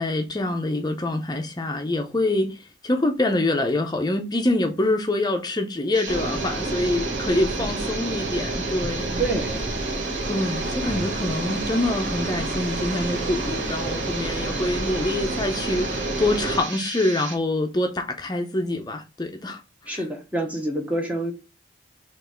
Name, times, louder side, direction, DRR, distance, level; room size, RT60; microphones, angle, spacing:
voice 1, 0.0-9.2 10.3-20.0, left 2 dB, 20° left, 0.6 m, -25 dB
sound 1, 5.9-17.4, right 5 dB, 75° right, 1.0 m, -35 dB
sound 2, 6.1-16.6, right 2 dB, 45° right, 1.2 m, -29 dB
voice 2, 9.2-9.6 19.9-21.3, right 2 dB, 5° right, 0.8 m, -27 dB
3.9 x 3.1 x 4.3 m
head